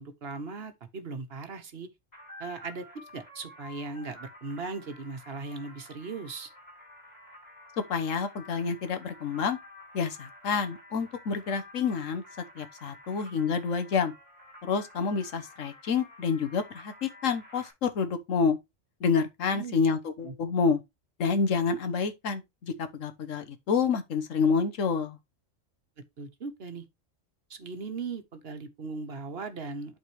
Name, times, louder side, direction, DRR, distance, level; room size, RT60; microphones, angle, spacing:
voice 1, 0.0-1.9 2.4-2.8 3.1-6.5 19.4-19.8 20.2-20.3 26.2-26.8 27.5-30.0, right 4 dB, 55° right, 1.2 m, -38 dB
sound 1, 2.1-17.7, left 2 dB, 35° left, 4.7 m, -51 dB
voice 2, 7.9-9.6 9.9-12.2 12.5-14.1 14.6-18.6 19.0-20.8 21.2-25.2, left 5 dB, 90° left, 1.4 m, -28 dB
11.0 x 4.2 x 3.0 m
omnidirectional pair, 1.3 m